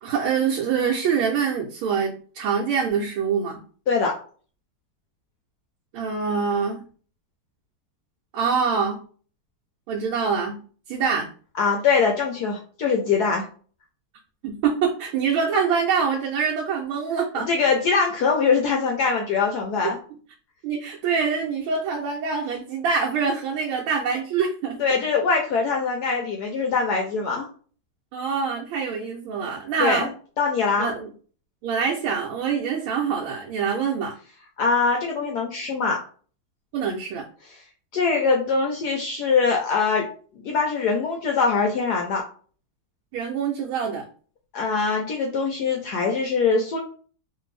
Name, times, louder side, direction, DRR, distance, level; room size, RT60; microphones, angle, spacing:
voice 1, 0.0-3.6 5.9-6.8 8.3-9.0 9.9-10.6 10.9-11.3 14.4-17.5 20.6-24.8 28.1-30.1 30.8-31.1 31.6-34.1 36.7-37.2 43.1-44.0, right 6 dB, 85° right, -2 dB, 1.5 m, -25 dB
voice 2, 11.6-13.5 17.4-20.0 24.8-27.5 29.8-30.1 30.4-30.9 34.6-36.0 37.9-40.1 40.4-42.2 44.5-46.8, left 5 dB, 75° left, 1 dB, 0.9 m, -22 dB
3.3 x 2.6 x 3.1 m, 0.42 s
omnidirectional pair, 2.3 m